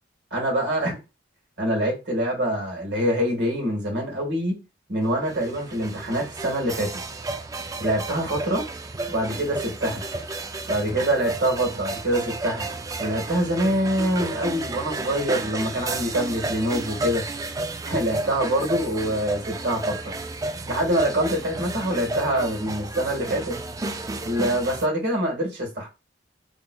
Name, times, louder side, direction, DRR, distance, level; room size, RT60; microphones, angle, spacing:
voice 1, 0.3-1.0 1.6-4.6 4.9-7.0 7.8-8.6 9.1-10.0 10.7-12.7 13.0-17.2 17.8-20.1 20.7-23.6 24.2-25.9, right 1 dB, 65° right, 1.7 m, -25 dB
sound 1, 5.0-24.9, right 2 dB, 20° right, 0.3 m, -32 dB
3.6 x 3.0 x 2.3 m
head